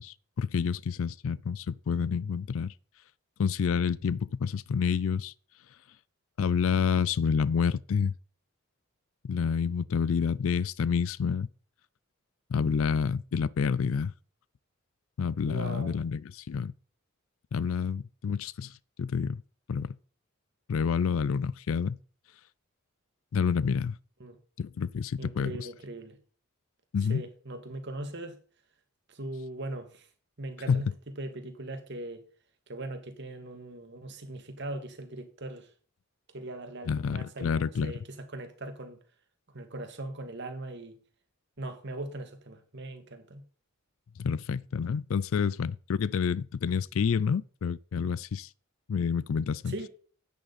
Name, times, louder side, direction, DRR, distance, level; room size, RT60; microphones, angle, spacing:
voice 1, 0.0-2.7 3.4-5.3 6.4-8.1 9.2-11.5 12.5-14.1 15.2-16.7 17.5-18.7 19.0-19.4 19.7-20.0 20.7-22.0 23.3-24.0 24.6-25.5 26.9-27.2 30.7-30.9 36.9-37.9 44.2-48.5 48.9-49.7, left 6 dB, 70° left, 0.4 m, -28 dB
voice 2, 15.5-16.0 24.2-24.4 25.2-26.2 27.0-28.4 29.1-30.1 30.4-30.9 31.2-32.2 32.7-35.7 36.3-39.0 39.5-41.0 41.6-43.4 49.6-49.9, right 2 dB, 55° right, 2.0 m, -40 dB
11.0 x 8.9 x 4.1 m
head